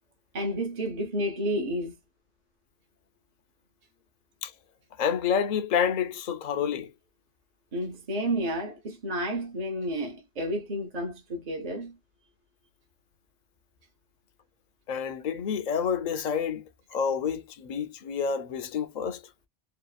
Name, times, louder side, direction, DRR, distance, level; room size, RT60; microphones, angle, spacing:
voice 1, 0.3-1.9 7.7-12.0, equal, 45° right, 0.7 m, -31 dB
voice 2, 5.0-6.9 14.9-16.6 16.9-19.2, left 7 dB, 55° left, 0.5 m, -28 dB
2.7 x 2.4 x 2.3 m
omnidirectional pair, 1.1 m